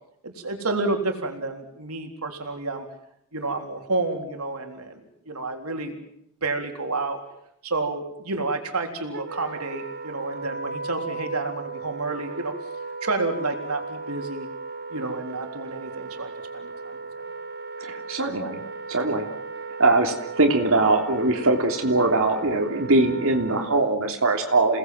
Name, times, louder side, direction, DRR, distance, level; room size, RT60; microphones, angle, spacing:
voice 1, 0.2-2.9 3.3-5.9 6.4-7.2 7.6-12.5 13.0-14.5 14.9-17.2, right 3 dB, 90° right, 5 dB, 3.8 m, -30 dB
Wind instrument woodwind instrument, 9.1-24.0, right 4 dB, 50° right, 1.5 m, -36 dB
voice 2, 17.8-18.6 18.9-19.3 19.8-24.8, right 2 dB, 70° right, 2 dB, 3.3 m, -21 dB
28.5 x 19.0 x 7.8 m, 0.74 s
head